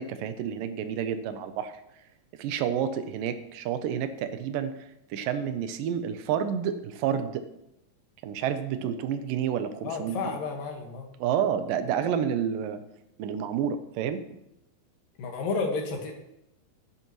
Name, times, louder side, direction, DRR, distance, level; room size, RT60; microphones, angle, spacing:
voice 1, 0.0-1.7 2.4-4.7 5.1-7.4 8.2-10.2 11.2-12.8 13.2-14.2, right 8 dB, 80° right, 10 dB, 2.3 m, -29 dB
voice 2, 9.8-11.1 15.2-16.1, left 4 dB, 75° left, 2 dB, 3.3 m, -31 dB
14.0 x 10.5 x 3.0 m, 0.83 s
omnidirectional pair, 4.0 m